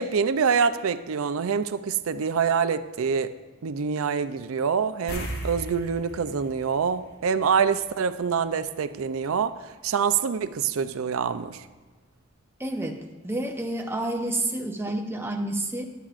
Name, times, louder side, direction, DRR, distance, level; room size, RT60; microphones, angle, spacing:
voice 1, 0.0-3.3 3.6-11.7, right 6 dB, 80° right, 12 dB, 0.5 m, -26 dB
sound 1, 5.1-7.9 8.2-8.3 11.2-11.3 11.7-11.8, equal, 50° left, 1.4 m, -37 dB
voice 2, 12.6-15.9, right 1 dB, 10° right, 3 dB, 0.8 m, -29 dB
14.5 x 11.0 x 2.5 m, 1.3 s
head